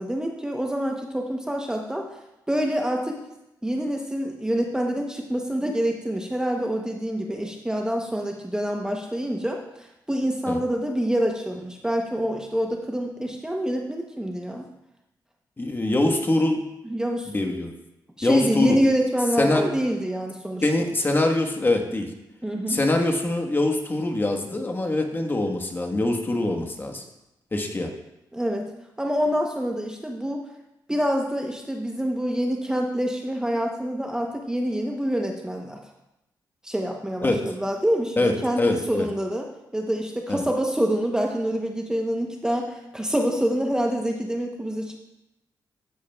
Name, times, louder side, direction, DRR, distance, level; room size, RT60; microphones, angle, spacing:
voice 1, 0.0-2.1 2.5-3.2 3.6-14.7 16.9-17.3 18.2-20.7 22.4-22.8 28.3-28.7 29.0-30.4 30.9-35.8 36.6-45.0, equal, 10° right, 2 dB, 0.8 m, -26 dB
voice 2, 15.6-16.6 17.3-17.7 18.2-18.8 19.4-19.7 20.6-22.1 22.7-27.0 27.5-27.9 37.2-37.4 38.2-39.1 40.3-40.4, left 2 dB, 25° left, 3 dB, 1.3 m, -23 dB
12.5 x 8.5 x 2.3 m, 0.90 s
cardioid pair, 80°, 8 cm